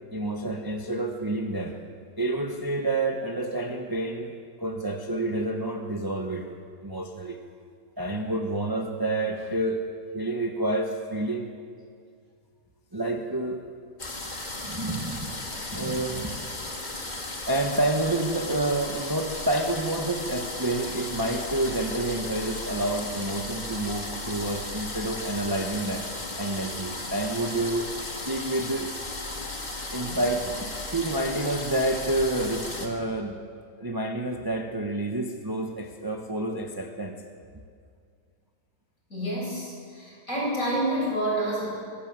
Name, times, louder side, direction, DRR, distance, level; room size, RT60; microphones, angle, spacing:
voice 1, 0.1-1.7 2.2-6.5 6.8-7.4 8.0-9.8 10.1-11.5 12.9-13.7 14.5-15.4 15.7-16.6 17.5-26.1 26.4-27.9 28.2-28.9 29.9-33.3 33.8-37.2, right 1 dB, 15° right, 3 dB, 1.0 m, -29 dB
sound 1, 14.0-32.9, left 2 dB, 25° left, 2.0 m, -35 dB
voice 2, 39.1-41.7, right 1 dB, 50° left, -4 dB, 7.8 m, -28 dB
22.0 x 16.0 x 7.6 m, 2.2 s
omnidirectional pair, 1.7 m